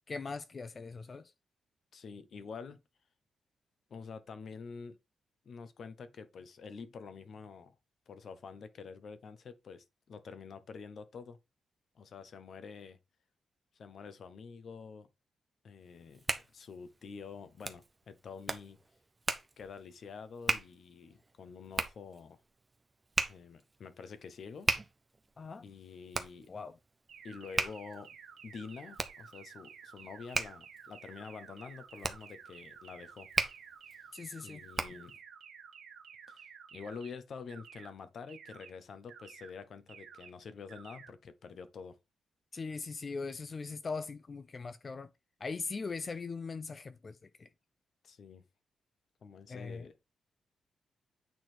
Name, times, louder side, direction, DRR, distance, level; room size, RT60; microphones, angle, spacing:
voice 1, 0.1-1.3 25.4-25.6 26.5-26.8 34.1-34.6 42.5-45.1 45.4-47.5 49.5-49.9, left 4 dB, 30° left, 0.4 m, -40 dB
voice 2, 1.9-2.8 3.9-5.0 5.4-7.7 8.1-11.4 11.9-13.0 13.7-15.1 15.6-18.8 19.6-22.4 23.3-24.7 25.6-26.5 27.2-28.1 28.4-33.3 34.4-35.2 36.3-42.0 48.0-48.4 49.2-50.0, left 5 dB, 50° left, 1.1 m, -47 dB
Hands, 15.9-35.2, right 2 dB, 15° right, 0.9 m, -38 dB
sound 1, 27.1-37.1 37.5-37.9 38.3-38.7 39.1-39.5 39.9-40.3 40.7-41.1, right 7 dB, 85° right, 1.8 m, -53 dB
9.2 x 4.1 x 4.5 m
wide cardioid pair, 160°, 0 cm